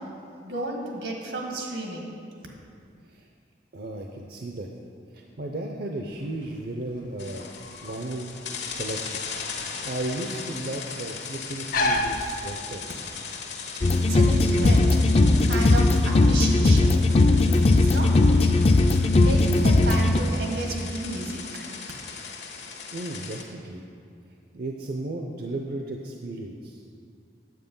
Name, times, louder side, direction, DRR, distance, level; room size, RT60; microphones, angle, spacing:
voice 1, 0.0-2.1 14.0-14.9 15.4-17.0 17.4-18.1 18.4-18.5 19.2-21.4, right 2 dB, 85° right, 0 dB, 1.7 m, -32 dB
voice 2, 3.7-4.7 5.1-7.4 7.8-9.2 9.6-13.1 22.9-23.8 24.5-26.9, right 2 dB, 60° right, 1 dB, 0.6 m, -35 dB
sound 1, 6.1-13.1, left 2 dB, 55° left, 0.8 m, -32 dB
sound 2, 7.2-23.4, left 5 dB, 80° left, 1.2 m, -38 dB
sound 3, 13.8-20.2, left 2 dB, 35° left, 0.4 m, -19 dB
9.2 x 7.8 x 5.4 m, 2.3 s
head